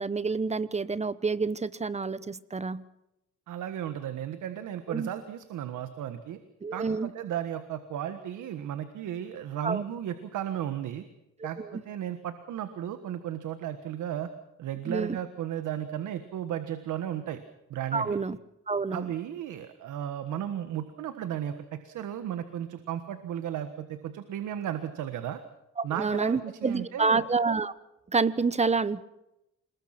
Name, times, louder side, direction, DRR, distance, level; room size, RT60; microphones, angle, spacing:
voice 1, 0.0-2.8 4.9-5.1 6.6-7.1 9.6-9.8 11.6-11.8 14.9-15.2 17.9-18.4 18.7-19.1 26.0-27.7 28.1-29.0, right 4 dB, 20° right, 17 dB, 1.0 m, -28 dB
voice 2, 3.5-6.4 6.7-11.0 11.4-14.3 14.6-17.4 17.7-18.2 18.9-25.4 25.8-27.2, right 10 dB, 80° right, 9 dB, 1.5 m, -34 dB
28.0 x 20.5 x 6.0 m, 0.90 s
cardioid pair, 90°, 30 cm